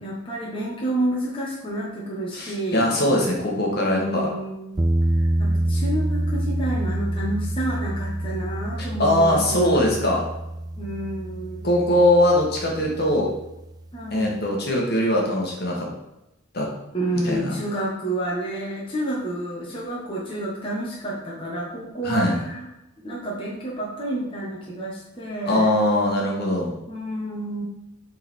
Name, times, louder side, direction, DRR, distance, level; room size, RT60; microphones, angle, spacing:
voice 1, 0.0-2.9 3.9-4.9 5.2-10.0 10.8-11.7 13.9-14.4 16.9-22.7 23.0-25.7 26.9-27.6, right 1 dB, 25° left, -5 dB, 1.3 m, -29 dB
voice 2, 2.3-4.3 9.0-10.2 11.6-13.3 14.1-15.9 16.5-16.7 17.2-17.5 22.0-22.3 25.4-26.7, left 1 dB, 50° left, -2 dB, 1.6 m, -21 dB
sound 1, 4.8-13.7, right 1 dB, 20° right, 0.3 m, -27 dB
7.5 x 4.1 x 4.3 m, 0.93 s
head